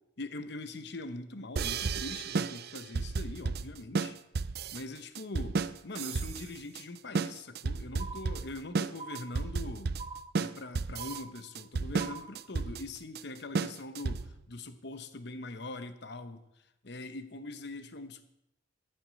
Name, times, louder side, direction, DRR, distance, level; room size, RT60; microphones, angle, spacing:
voice 1, 0.2-4.2 4.7-9.9 10.4-16.5 16.8-18.2, left 2 dB, 60° left, 10 dB, 1.0 m, -42 dB
sound 1, 1.6-14.4, right 4 dB, 55° right, 0.5 m, -33 dB
sound 2, 8.0-8.7 9.0-9.7 10.0-10.7 11.0-11.7 12.0-12.7, right 4 dB, 30° right, 0.8 m, -45 dB
13.0 x 7.9 x 6.3 m, 0.86 s
head